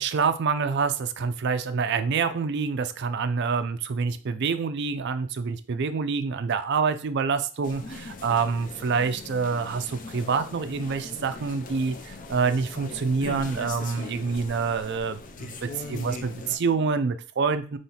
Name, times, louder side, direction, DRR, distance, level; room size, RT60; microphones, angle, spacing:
voice 1, 0.0-17.8, right 5 dB, 55° right, 10 dB, 0.4 m, -27 dB
sound 1, 7.6-16.6, left 3 dB, 40° left, 0.5 m, -40 dB
5.6 x 3.0 x 2.9 m, 0.39 s
head